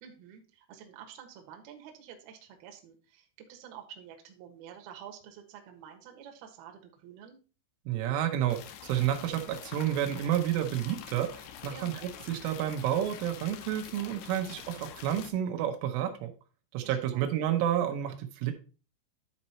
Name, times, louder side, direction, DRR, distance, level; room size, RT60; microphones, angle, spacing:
voice 1, 0.0-7.4 11.7-12.0 16.8-17.2, right 8 dB, 65° right, 4 dB, 2.7 m, -49 dB
voice 2, 7.9-16.3 16.7-18.5, right 11 dB, 85° right, 5 dB, 3.5 m, -30 dB
sound 1, 8.5-15.3, left 10 dB, 85° left, 2.4 m, -46 dB
11.0 x 4.4 x 4.1 m, 0.35 s
omnidirectional pair, 5.6 m